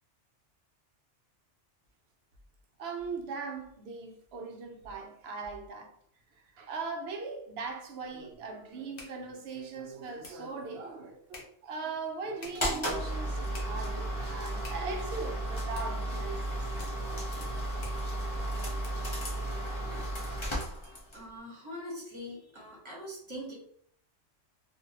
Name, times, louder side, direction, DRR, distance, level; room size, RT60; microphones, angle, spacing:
voice 1, 2.8-5.9 6.6-16.4 16.8-17.7 19.6-20.2, right 4 dB, 65° right, 0.7 m, -40 dB
sound 1, 7.6-19.2, left 2 dB, 60° left, 1.1 m, -54 dB
sound 2, 12.5-21.3, right 1 dB, 30° left, 0.7 m, -34 dB
voice 2, 20.8-23.5, equal, 25° right, 1.0 m, -43 dB
2.8 x 2.5 x 2.8 m
omnidirectional pair, 1.3 m